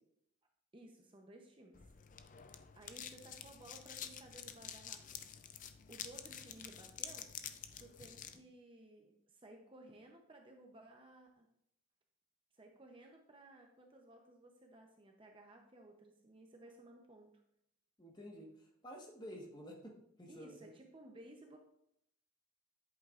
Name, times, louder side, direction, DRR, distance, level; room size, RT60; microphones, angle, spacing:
voice 1, 0.7-1.8 2.7-5.2 5.9-7.3 7.8-11.5 12.5-17.3 20.3-21.6, right 1 dB, 25° right, 2 dB, 0.8 m, -57 dB
sound 1, 1.7-8.4, left 8 dB, 35° left, 0.5 m, -49 dB
voice 2, 18.0-18.5 18.8-20.7, equal, 20° left, 0 dB, 1.5 m, -51 dB
10.5 x 8.2 x 2.5 m, 0.75 s
head